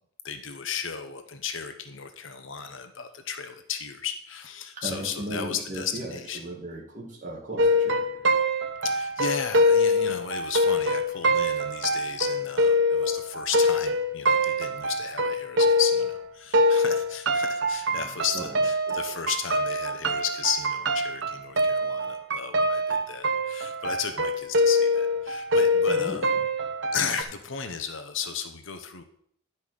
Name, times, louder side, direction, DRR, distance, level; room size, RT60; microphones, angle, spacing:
voice 1, 0.2-6.4 8.8-26.3 26.9-29.0, left 7 dB, 65° left, 7 dB, 0.9 m, -34 dB
voice 2, 4.8-8.0 18.4-18.5 18.9-19.0 25.9-26.2, right 1 dB, 35° right, -3 dB, 1.9 m, -36 dB
sound 1, 7.6-16.2 16.5-27.2, left 1 dB, 60° right, 0.9 m, -24 dB
11.0 x 5.5 x 6.4 m, 0.67 s
head